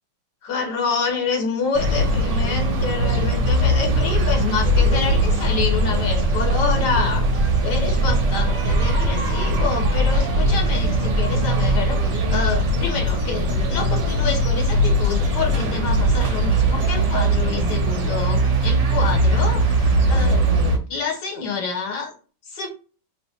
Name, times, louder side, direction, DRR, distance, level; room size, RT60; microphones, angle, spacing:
voice 1, 0.4-7.3 7.6-20.4 20.9-22.1 22.5-22.7, left 5 dB, 70° left, 1 dB, 1.4 m, -27 dB
sound 1, 1.7-20.8, right 1 dB, 70° right, 1.3 m, -20 dB
3.1 x 2.1 x 4.0 m, 0.37 s
omnidirectional pair, 2.0 m